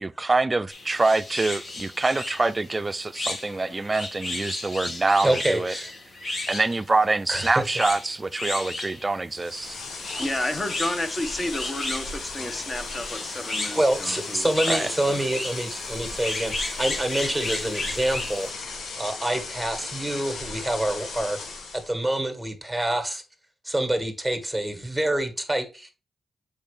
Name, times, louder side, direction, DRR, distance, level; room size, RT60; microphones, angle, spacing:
voice 1, 0.0-5.7 6.5-9.8 14.7-14.9, right 3 dB, 30° right, 0.5 m, -25 dB
sound 1, 0.7-18.5, left 2 dB, 55° left, 1.8 m, -34 dB
voice 2, 5.2-5.9 7.3-7.6 13.7-18.5 19.0-21.4 21.9-23.2 23.6-25.9, right 1 dB, ahead, 1.8 m, -26 dB
sound 2, 9.4-21.9, left 3 dB, 85° left, 1.5 m, -36 dB
voice 3, 10.1-15.2, left 1 dB, 25° left, 1.2 m, -31 dB
7.2 x 4.9 x 3.3 m
cardioid pair, 70°, 0 cm